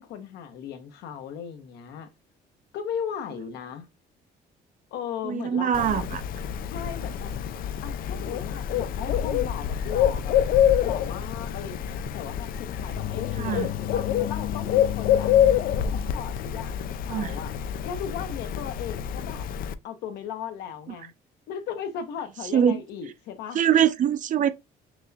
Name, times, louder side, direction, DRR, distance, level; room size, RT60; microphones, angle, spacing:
voice 1, 0.0-2.1 2.7-3.9 4.9-6.1 6.7-7.3 7.8-10.4 10.8-15.3 15.9-17.5 17.8-19.5 19.8-21.1 21.5-23.6, left 8 dB, 80° left, 0.9 m, -37 dB
voice 2, 5.2-6.2 13.4-13.7 17.1-17.4 22.5-22.8 23.5-24.5, right 9 dB, 50° right, 0.5 m, -23 dB
Bird, 5.7-19.7, left 10 dB, 60° left, 0.4 m, -26 dB
6.0 x 2.2 x 2.8 m
cardioid pair, 110°, 17 cm